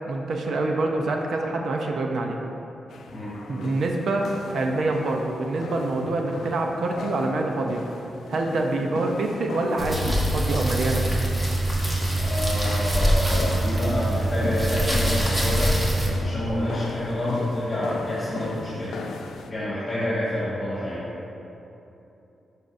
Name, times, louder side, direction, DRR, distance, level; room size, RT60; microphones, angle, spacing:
voice 1, 0.1-2.4 3.5-7.8 8.3-11.0, right 2 dB, 65° right, 2 dB, 0.6 m, -26 dB
sound 1, 2.9-19.5, left 4 dB, 90° left, 0.4 m, -38 dB
sound 2, 9.8-16.1, right 1 dB, 10° right, 1.2 m, -24 dB
voice 2, 12.2-15.8 16.1-19.0 19.5-21.0, left 1 dB, 30° left, -10 dB, 1.6 m, -28 dB
11.5 x 5.6 x 2.6 m, 2.9 s
wide cardioid pair, 155°, 0 cm